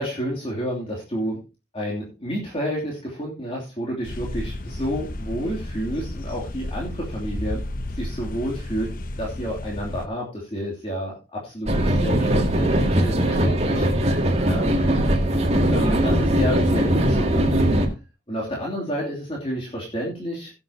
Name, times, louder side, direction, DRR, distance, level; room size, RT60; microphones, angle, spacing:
voice 1, 0.0-1.4 1.7-7.6 7.9-8.9 9.2-13.8 14.4-14.7 15.7-17.9 18.3-20.5, equal, 30° left, -3 dB, 3.0 m, -30 dB
sound 1, 4.0-10.1, left 1 dB, 50° left, 0.9 m, -32 dB
sound 2, 11.7-17.9, right 1 dB, 35° right, 2.2 m, -20 dB
17.0 x 8.7 x 2.9 m, 0.29 s
head